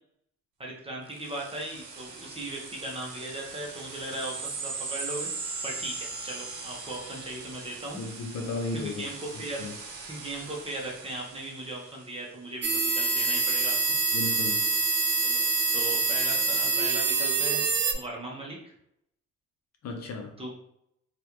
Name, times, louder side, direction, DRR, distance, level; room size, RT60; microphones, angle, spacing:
voice 1, 0.6-8.0 8.7-9.6 10.1-12.7 12.9-13.8 15.2-15.4 15.7-17.6 17.9-18.7 20.4-20.6, right 1 dB, 20° right, -2 dB, 0.9 m, -38 dB
sound 1, 1.1-12.2, right 4 dB, 70° right, 0.9 m, -40 dB
voice 2, 8.0-9.1 9.6-9.7 14.1-14.7 19.8-20.4, left 2 dB, 60° left, 2 dB, 0.7 m, -34 dB
sound 2, 12.6-17.9, right 3 dB, 40° right, 0.5 m, -25 dB
3.0 x 2.5 x 2.9 m, 0.75 s
cardioid pair, 90°, 30 cm